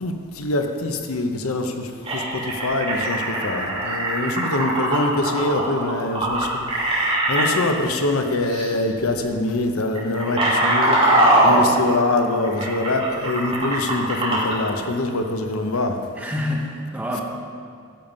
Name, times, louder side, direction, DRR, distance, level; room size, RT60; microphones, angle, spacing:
voice 1, 0.0-11.0 11.4-15.9, left 2 dB, 90° left, 5 dB, 1.0 m, -24 dB
sound 1, 2.0-7.5 8.5-8.7 9.0-9.2 9.8-14.6, right 1 dB, 25° right, 3.0 m, -21 dB
voice 2, 16.2-17.2, left 1 dB, 5° right, -2 dB, 1.3 m, -27 dB
13.0 x 7.3 x 5.3 m, 2.3 s
head